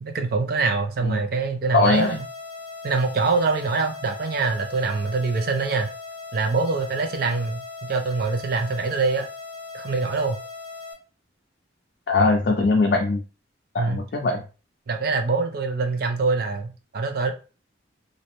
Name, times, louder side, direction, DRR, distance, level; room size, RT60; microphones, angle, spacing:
voice 1, 0.0-2.2 2.8-5.9 6.3-7.6 7.9-9.3 9.7-10.4 13.8-14.0 14.9-17.3, right 4 dB, 50° right, 0.4 m, -24 dB
voice 2, 1.7-2.2 12.1-13.2 13.7-14.4, left 3 dB, 55° left, 0.4 m, -21 dB
sound 1, 1.9-10.9, left 4 dB, 25° left, 0.8 m, -38 dB
2.6 x 2.0 x 2.9 m
head